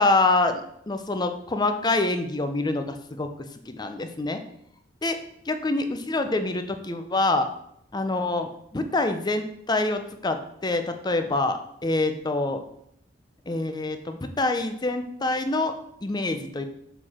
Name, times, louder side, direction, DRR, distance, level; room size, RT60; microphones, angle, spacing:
voice 1, 0.0-3.3 3.7-4.4 5.0-5.2 5.5-7.5 7.9-12.6 13.5-15.7 16.0-16.6, left 2 dB, 20° left, 7 dB, 0.6 m, -26 dB
7.0 x 4.5 x 4.3 m, 0.73 s
head